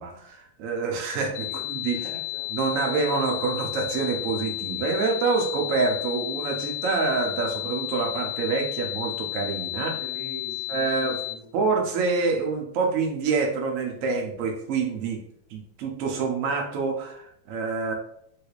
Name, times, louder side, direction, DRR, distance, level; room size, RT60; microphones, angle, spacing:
voice 1, 0.0-2.0 2.5-10.0 10.7-11.2 11.5-15.2 15.5-17.9, right 4 dB, 85° right, 1 dB, 0.7 m, -26 dB
sound 1, 1.3-11.3, left 20 dB, 70° left, 1.1 m, -33 dB
voice 2, 1.5-2.5 9.8-11.9, right 1 dB, 70° right, -1 dB, 1.5 m, -44 dB
3.2 x 3.1 x 2.4 m, 0.71 s
omnidirectional pair, 2.2 m